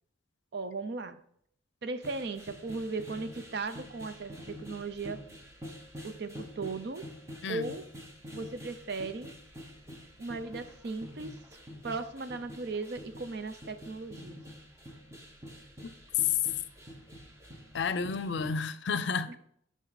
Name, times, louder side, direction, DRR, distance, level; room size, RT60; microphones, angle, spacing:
voice 1, 0.5-1.2 1.8-5.2 6.0-7.1 7.5-7.9 8.3-9.3 10.2-11.4 11.8-14.4 19.3-19.4, right 3 dB, 55° right, 0.5 m, -37 dB
sound 1, 2.0-18.5, equal, 15° right, 0.9 m, -47 dB
voice 2, 17.7-19.4, left 5 dB, 60° left, 0.5 m, -31 dB
6.5 x 5.3 x 4.0 m
head